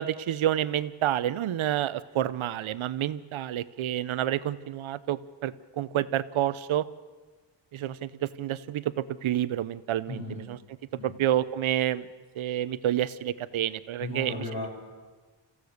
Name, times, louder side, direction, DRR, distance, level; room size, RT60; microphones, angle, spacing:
voice 1, 0.0-6.9 7.7-10.6 11.0-12.1 12.4-14.3, right 12 dB, 85° right, 15 dB, 0.8 m, -29 dB
voice 2, 10.1-10.5 11.0-11.1 14.0-14.7, left 2 dB, 55° left, -6 dB, 6.4 m, -35 dB
27.0 x 15.5 x 6.5 m, 1.3 s
cardioid pair, 100°, 47 cm